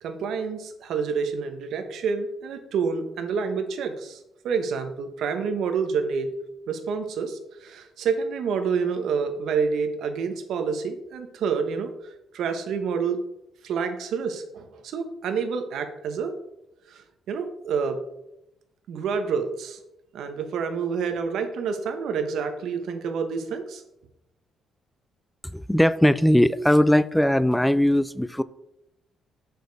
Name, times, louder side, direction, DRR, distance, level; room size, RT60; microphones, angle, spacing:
voice 1, 0.0-6.3 6.7-11.9 12.3-13.2 13.6-16.3 16.9-18.0 18.9-19.8 20.1-23.8, right 5 dB, 75° right, 1.0 m, -28 dB
voice 2, 25.4-28.4, equal, 5° left, 0.3 m, -20 dB
6.3 x 5.2 x 4.6 m
cardioid pair, 90°, 0 cm